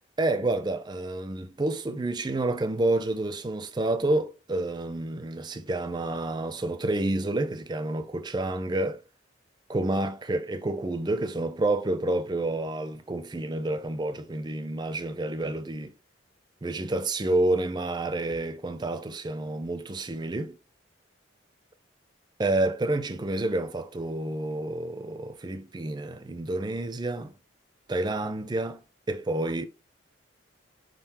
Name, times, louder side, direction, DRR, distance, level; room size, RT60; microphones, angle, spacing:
voice 1, 0.2-9.0 9.7-15.9 16.6-20.6 22.4-27.3 27.9-28.8 29.1-29.7, right 2 dB, 20° right, 0.4 m, -29 dB
4.8 x 3.8 x 2.8 m
head